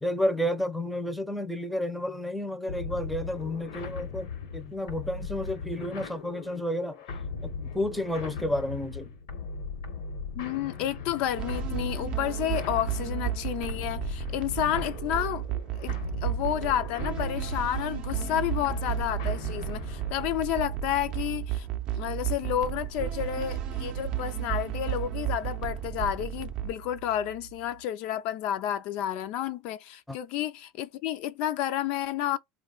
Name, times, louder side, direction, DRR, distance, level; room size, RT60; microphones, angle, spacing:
voice 1, 0.0-7.0 7.4-9.1 30.1-30.2, left 1 dB, ahead, 0.5 m, -31 dB
sound 1, 2.7-20.3, left 5 dB, 90° left, 0.9 m, -38 dB
voice 2, 10.3-15.4 15.8-21.7 22.0-32.4, left 11 dB, 65° left, 0.3 m, -31 dB
sound 2, 11.4-26.7, right 11 dB, 50° right, 0.5 m, -33 dB
sound 3, 17.9-27.8, right 12 dB, 90° right, 0.7 m, -45 dB
2.3 x 2.2 x 3.7 m
supercardioid pair, 120°, 2 cm